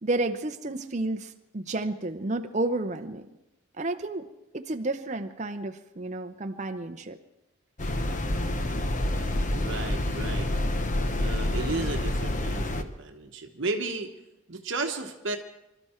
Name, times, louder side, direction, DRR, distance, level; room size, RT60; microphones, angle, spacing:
voice 1, 0.0-3.3 3.8-4.3 4.5-7.2, right 2 dB, 35° right, 6 dB, 0.7 m, -31 dB
sound 1, 7.8-12.8, left 1 dB, 35° left, 0.9 m, -28 dB
voice 2, 9.2-10.5 11.2-14.2 14.5-15.4, right 3 dB, 60° right, 5 dB, 1.1 m, -34 dB
25.5 x 13.0 x 4.4 m, 0.94 s
head